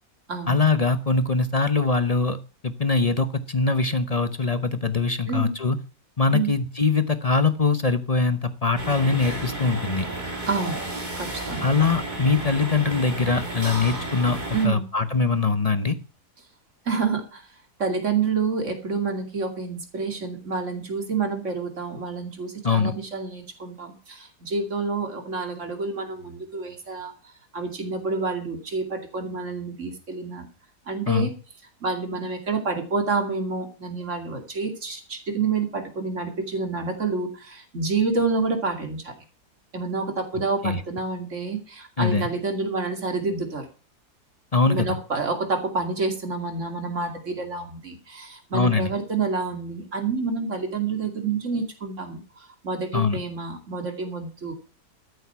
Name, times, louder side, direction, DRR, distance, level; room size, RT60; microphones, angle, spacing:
voice 1, 0.5-2.4 2.6-5.8 6.2-10.1 11.6-14.4 14.6-16.0 22.6-22.9 31.1-31.3 40.6-40.8 42.0-42.3 44.5-45.0 48.5-48.9 52.9-53.2, left 4 dB, 30° left, 11 dB, 0.7 m, -22 dB
sound 1, 8.8-14.7, right 2 dB, 25° right, 2.8 m, -32 dB
voice 2, 10.5-10.8 11.2-11.7 14.5-14.8 16.9-17.4 17.8-27.1 27.5-30.5 30.9-31.3 31.8-39.1 39.7-43.7 44.7-52.2 52.6-54.5, right 4 dB, 45° right, 6 dB, 2.8 m, -28 dB
13.0 x 8.2 x 5.7 m, 0.35 s
omnidirectional pair, 1.7 m